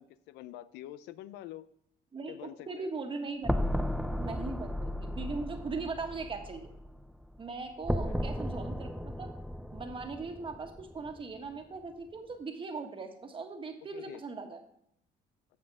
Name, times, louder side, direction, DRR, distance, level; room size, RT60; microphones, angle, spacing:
voice 1, 0.0-1.7 2.3-2.9 8.0-8.3 13.9-14.2, left 13 dB, 90° left, 15 dB, 0.5 m, -46 dB
voice 2, 2.1-3.8 4.2-6.7 7.4-9.3 9.7-14.6, right 4 dB, 30° right, 4 dB, 1.5 m, -39 dB
sound 1, 3.4-7.5 7.8-11.2, equal, ahead, 0.4 m, -35 dB
15.0 x 5.5 x 3.5 m, 0.71 s
cardioid pair, 110°, 17 cm